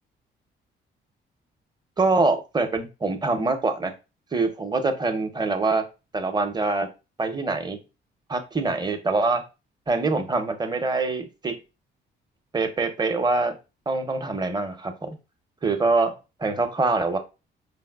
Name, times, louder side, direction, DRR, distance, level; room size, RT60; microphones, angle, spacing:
voice 1, 2.0-3.9 4.3-5.8 6.1-6.9 7.2-7.8 8.3-9.4 9.9-11.6 12.5-13.5 13.9-15.2 15.6-17.2, right 3 dB, 20° right, 6 dB, 0.6 m, -24 dB
4.6 x 2.1 x 2.3 m, 0.28 s
cardioid pair, 90°, 20 cm